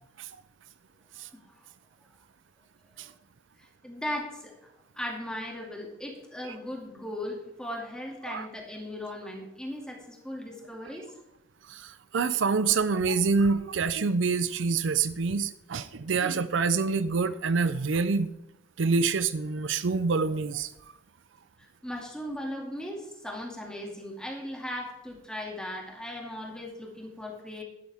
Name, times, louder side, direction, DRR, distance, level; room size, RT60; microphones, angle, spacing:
voice 1, 3.6-4.7 4.9-11.2 21.6-27.6, left 1 dB, 5° left, 0 dB, 2.3 m, -38 dB
voice 2, 11.7-18.3 18.8-20.7, right 4 dB, 70° right, 14 dB, 0.5 m, -26 dB
12.0 x 12.0 x 3.5 m, 0.87 s
head